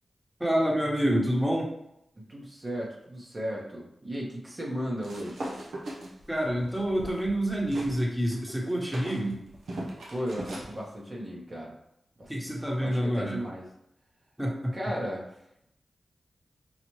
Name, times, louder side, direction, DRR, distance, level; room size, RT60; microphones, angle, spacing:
voice 1, 0.4-1.7 6.3-9.4 12.3-13.4 14.4-14.7, equal, 5° right, -2 dB, 1.2 m, -27 dB
voice 2, 2.3-5.5 10.1-11.7 12.2-12.3 12.8-13.7 14.7-15.2, equal, 45° right, -4 dB, 1.0 m, -35 dB
sound 1, 5.0-8.0 8.3-10.7, right 1 dB, 85° right, 0.8 m, -39 dB
5.7 x 2.4 x 3.1 m, 0.80 s
cardioid pair, 45°, 0 cm